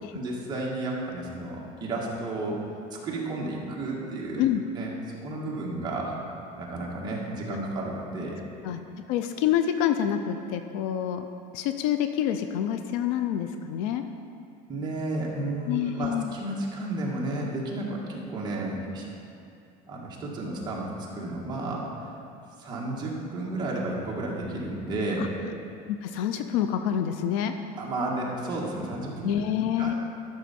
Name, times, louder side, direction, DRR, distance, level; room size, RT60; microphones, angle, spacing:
voice 1, 0.1-2.6 2.9-4.4 4.7-4.9 5.2-6.2 6.6-8.4 14.7-19.1 19.9-20.8 21.1-21.9 22.6-25.3 27.8-29.3 29.8-29.9, right 2 dB, 25° right, -4 dB, 1.6 m, -32 dB
voice 2, 9.1-11.3 11.5-14.0 15.7-16.3 25.2-25.3 25.9-27.5 29.2-29.9, left 10 dB, 80° left, 8 dB, 0.5 m, -27 dB
13.0 x 6.2 x 4.3 m, 2.6 s
cardioid pair, 160°, 17 cm